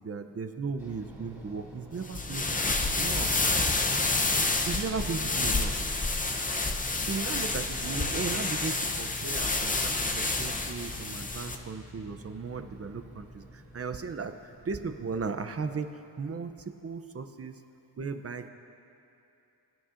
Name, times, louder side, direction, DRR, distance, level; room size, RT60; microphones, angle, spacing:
voice 1, 0.0-3.3 4.7-5.7 7.1-17.6 18.0-18.5, right 5 dB, 35° right, 8 dB, 0.5 m, -36 dB
sound 1, 0.8-15.8, right 1 dB, 5° right, 2.6 m, -48 dB
sound 2, 2.0-11.6, left 3 dB, 20° left, 0.6 m, -29 dB
23.0 x 9.8 x 2.5 m, 2.8 s
wide cardioid pair, 120°, 43 cm